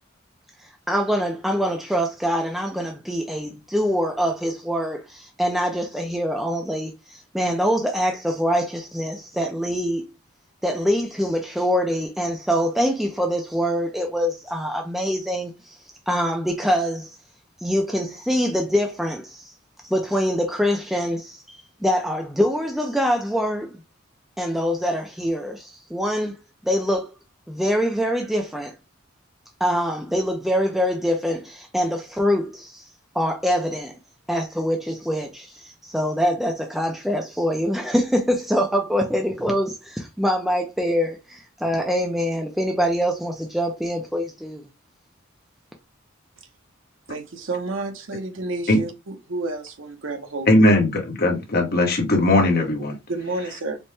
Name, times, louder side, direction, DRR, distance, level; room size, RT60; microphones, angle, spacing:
voice 1, 0.6-10.1 10.6-15.8 16.1-17.2 17.6-19.5 19.8-23.8 24.4-26.4 26.6-27.1 27.5-28.7 29.6-32.9 33.1-33.9 34.3-44.7, equal, ahead, 0.4 m, -24 dB
voice 2, 47.1-50.7 53.1-53.8, right 2 dB, 65° right, 0.8 m, -30 dB
voice 3, 50.5-53.0, left 1 dB, 50° left, 1.0 m, -18 dB
4.3 x 2.1 x 3.2 m
head